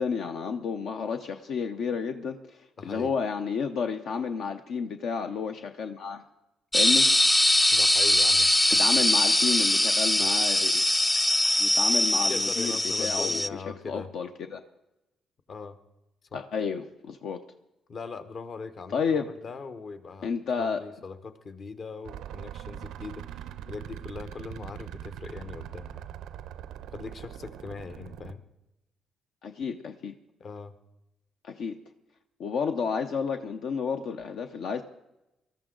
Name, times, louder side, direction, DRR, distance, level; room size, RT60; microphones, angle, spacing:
voice 1, 0.0-6.2 6.7-7.1 8.8-10.7 11.6-13.4 13.8-14.6 16.3-17.4 18.9-19.2 20.2-20.8 29.4-30.1 31.4-31.8 32.4-34.8, left 6 dB, 75° left, 6 dB, 0.7 m, -31 dB
voice 2, 2.8-3.1 7.7-8.5 12.3-14.1 15.5-15.8 16.3-16.4 17.9-20.3 20.6-26.1 26.9-28.4 30.4-30.7, left 4 dB, 50° left, 11 dB, 1.0 m, -40 dB
sound 1, 6.7-13.5, left 1 dB, 10° left, 0.4 m, -22 dB
sound 2, 22.0-28.3, right 11 dB, 90° right, 0.5 m, -42 dB
19.5 x 13.0 x 3.8 m, 0.94 s
cardioid pair, 90°, 0 cm